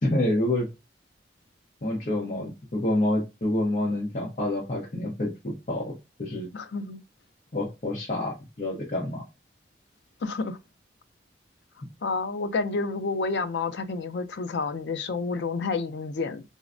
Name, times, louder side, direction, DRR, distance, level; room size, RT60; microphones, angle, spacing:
voice 1, 0.0-0.7 1.8-6.5 7.5-9.2, left 1 dB, 45° left, 0.7 m, -28 dB
voice 2, 6.5-7.0 10.2-10.6 12.0-16.4, left 4 dB, 75° left, 0.4 m, -29 dB
3.8 x 2.1 x 2.5 m
head